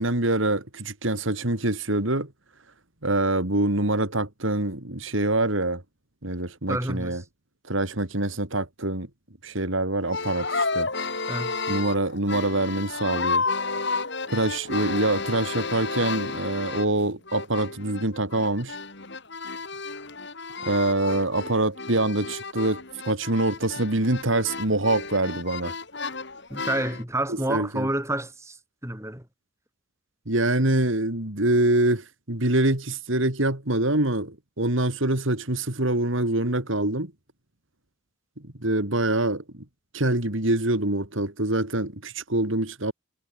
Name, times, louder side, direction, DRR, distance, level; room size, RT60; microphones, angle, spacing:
voice 1, 0.0-2.3 3.0-5.8 6.2-7.2 7.7-9.1 9.4-10.9 11.7-13.4 14.3-18.8 20.6-25.7 27.3-27.9 30.3-37.1 38.4-39.6 39.9-42.9, right 2 dB, 65° right, 3.2 m, -25 dB
voice 2, 6.7-7.2 11.3-11.6 26.5-28.6 28.8-29.3, right 1 dB, 15° right, 5.3 m, -29 dB
sound 1, 10.0-17.0 17.3-27.0, left 4 dB, 55° left, 3.6 m, -32 dB
head